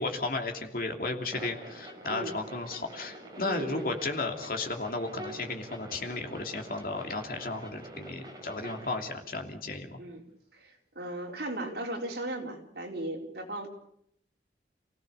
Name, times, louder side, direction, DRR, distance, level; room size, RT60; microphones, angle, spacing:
voice 1, 0.0-10.0, left 2 dB, 50° left, 4 dB, 2.9 m, -34 dB
sound 1, 1.3-9.1, right 1 dB, 20° right, 4.8 m, -46 dB
voice 2, 3.4-3.9 10.0-10.2 10.5-13.7, right 1 dB, 65° right, 1 dB, 4.4 m, -36 dB
28.5 x 17.0 x 6.9 m, 0.70 s
head